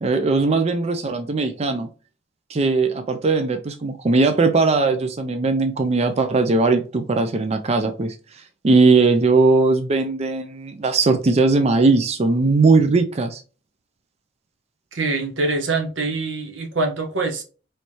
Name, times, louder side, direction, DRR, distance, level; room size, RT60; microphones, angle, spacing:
voice 1, 0.0-1.9 2.5-13.4, right 3 dB, 35° right, 0.4 m, -19 dB
voice 2, 14.9-17.4, right 3 dB, 85° right, 1.0 m, -24 dB
4.6 x 3.2 x 2.8 m
head